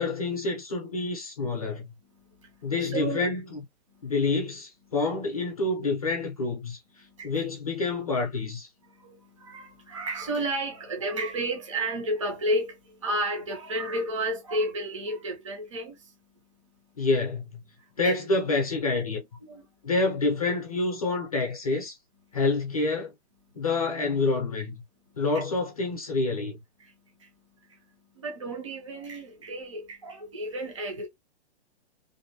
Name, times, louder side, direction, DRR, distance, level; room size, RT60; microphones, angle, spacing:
voice 1, 0.0-1.9 2.6-3.6 4.0-6.8 7.2-8.7 17.0-17.6 18.0-19.3 19.8-22.0 22.3-23.1 23.6-24.8 25.2-26.6, left 3 dB, 35° left, 0.5 m, -27 dB
voice 2, 2.1-3.2 3.9-4.1 7.0-7.4 7.8-7.9 8.8-16.3 16.7-16.9 17.8-18.1 19.5-19.7 22.3-22.4 23.5-23.6 25.1-25.4 26.8-31.1, right 1 dB, 30° right, 0.4 m, -33 dB
2.6 x 2.1 x 2.6 m
hypercardioid pair, 180°, 33 cm